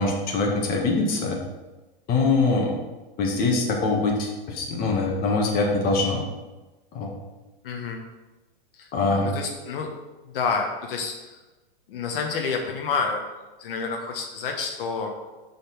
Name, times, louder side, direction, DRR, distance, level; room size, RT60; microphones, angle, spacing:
voice 1, 0.0-1.4 2.1-2.7 3.2-6.2 6.9-7.1 8.9-9.3, left 3 dB, 30° left, 0 dB, 1.5 m, -23 dB
voice 2, 7.6-8.0 8.7-9.9 10.3-11.4 11.9-13.3 13.6-15.1, left 5 dB, 70° left, 2 dB, 1.1 m, -29 dB
6.8 x 4.2 x 5.7 m, 1.1 s
hypercardioid pair, 135°, 29 cm